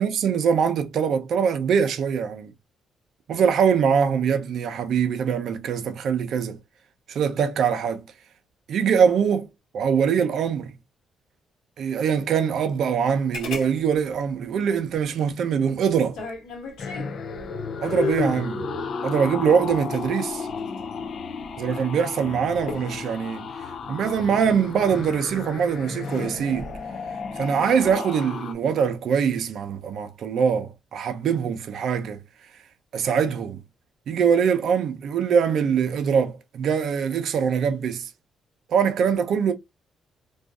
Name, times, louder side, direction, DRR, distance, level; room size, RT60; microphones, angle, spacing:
voice 1, 0.0-2.5 3.3-6.6 7.1-8.0 8.7-9.5 9.7-10.7 11.8-16.3 17.8-18.7 19.0-20.5 21.6-23.5 23.9-26.7 27.4-32.2 32.9-33.6 34.1-38.1 38.7-39.5, right 7 dB, 70° right, 0.5 m, -23 dB
sound 1, 13.3-13.7 13.9-14.0 15.9-17.2 17.8-18.5 19.7-20.9 22.7-23.1 24.9-25.3 25.8-26.3 27.7-28.0, left 4 dB, 85° left, 1.2 m, -33 dB
sound 2, 16.8-28.5, left 5 dB, 55° left, 0.4 m, -33 dB
2.6 x 2.3 x 2.3 m
cardioid pair, 90°, 0 cm